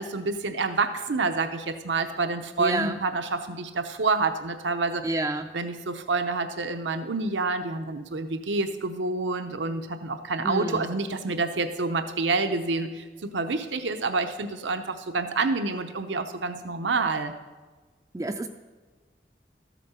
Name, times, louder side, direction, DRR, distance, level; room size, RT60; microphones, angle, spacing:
voice 1, 0.0-5.0 5.5-17.3, right 3 dB, 90° right, 7 dB, 0.7 m, -28 dB
voice 2, 2.6-3.0 5.0-5.5 10.4-10.9 18.1-18.5, right 2 dB, 20° right, 5 dB, 0.3 m, -29 dB
13.5 x 8.4 x 5.6 m, 1.3 s
head